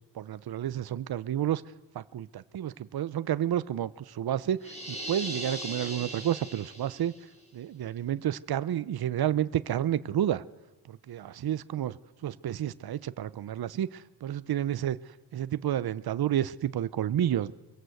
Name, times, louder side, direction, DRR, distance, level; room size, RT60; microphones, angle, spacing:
voice 1, 0.1-1.6 1.9-7.1 7.5-10.4 10.9-12.0 12.2-15.0 15.3-17.5, right 11 dB, 55° right, 15 dB, 0.9 m, -30 dB
sound 1, 4.6-7.2, right 1 dB, 15° left, 7.6 m, -38 dB
25.0 x 23.0 x 8.0 m, 1.1 s
cardioid pair, 130°, 44 cm